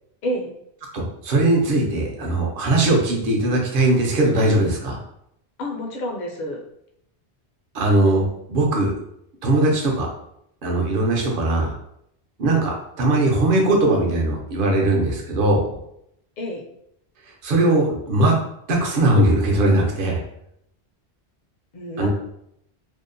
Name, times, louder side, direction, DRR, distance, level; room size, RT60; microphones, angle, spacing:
voice 1, 0.9-5.0 7.7-8.9 9.4-10.1 10.6-11.7 12.4-15.7 17.4-18.3 18.7-20.2 22.0-22.1, right 2 dB, 60° right, 0 dB, 0.7 m, -19 dB
voice 2, 5.6-6.6 16.4-16.6 21.7-22.1, equal, 55° left, 0 dB, 0.5 m, -28 dB
2.7 x 2.1 x 2.5 m, 0.76 s
omnidirectional pair, 1.1 m